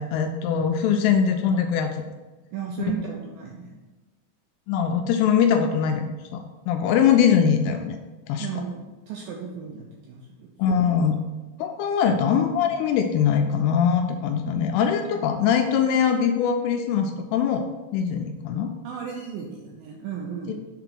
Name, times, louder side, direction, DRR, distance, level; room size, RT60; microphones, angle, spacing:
voice 1, 0.0-2.0 4.7-8.0 8.3-8.5 10.6-11.2 11.6-17.7 17.9-18.7, left 7 dB, 85° left, 5 dB, 2.4 m, -22 dB
voice 2, 2.5-3.7 8.4-10.8 12.1-12.2 18.8-20.6, right 7 dB, 80° right, -1 dB, 2.1 m, -35 dB
6.9 x 4.2 x 6.0 m, 1.2 s
omnidirectional pair, 4.9 m